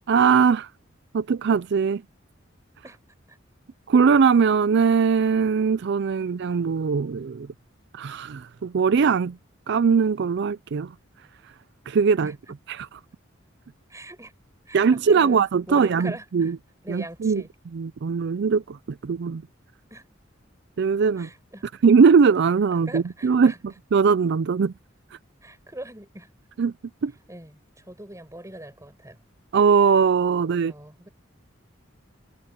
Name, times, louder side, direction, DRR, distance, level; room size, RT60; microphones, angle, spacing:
voice 1, 0.1-0.7 1.1-2.0 3.9-7.5 7.9-9.4 9.7-10.9 11.9-12.3 12.7-13.0 14.7-16.6 16.9-17.4 17.7-18.8 19.0-19.4 20.8-21.3 21.8-24.7 26.6-26.7 27.0-27.1 29.5-30.7, right 5 dB, 60° right, 0.4 m, -20 dB
voice 2, 13.9-14.3 14.7-16.5 16.8-17.5 19.9-20.0 21.2-21.7 22.9-23.6 25.4-26.3 27.3-27.6 27.9-29.2 30.3-31.1, right 1 dB, 15° right, 7.7 m, -41 dB
head